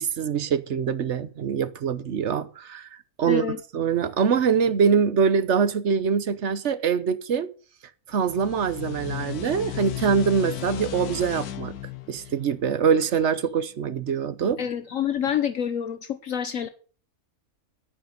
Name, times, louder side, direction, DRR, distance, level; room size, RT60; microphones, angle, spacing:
voice 1, 0.0-2.9 3.2-3.4 3.7-7.5 8.1-11.7 12.1-14.6, right 6 dB, 55° right, 1.1 m, -24 dB
voice 2, 3.3-3.6 14.6-16.7, left 9 dB, 65° left, 1.2 m, -27 dB
sound 1, 8.1-13.4, left 13 dB, 90° left, 1.4 m, -35 dB
11.0 x 9.5 x 6.5 m
omnidirectional pair, 1.6 m